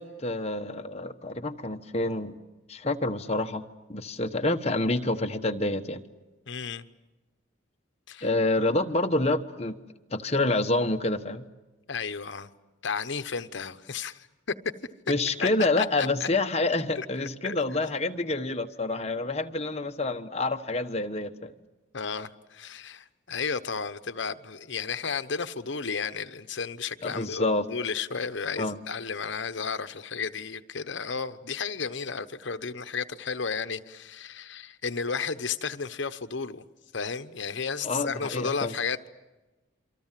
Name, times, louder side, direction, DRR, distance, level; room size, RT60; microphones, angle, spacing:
voice 1, 0.0-2.4 2.7-3.6 3.9-6.0 8.2-9.8 10.1-11.4 15.1-21.5 27.0-27.7 28.6-28.8 37.8-38.7, left 2 dB, 30° left, 1.2 m, -27 dB
voice 2, 6.5-6.8 8.1-8.3 11.9-12.5 12.8-14.3 15.4-15.5 15.8-16.3 17.0-17.1 17.4-17.6 21.9-36.6 36.9-39.1, left 5 dB, 65° left, 1.0 m, -33 dB
28.0 x 25.0 x 7.5 m
head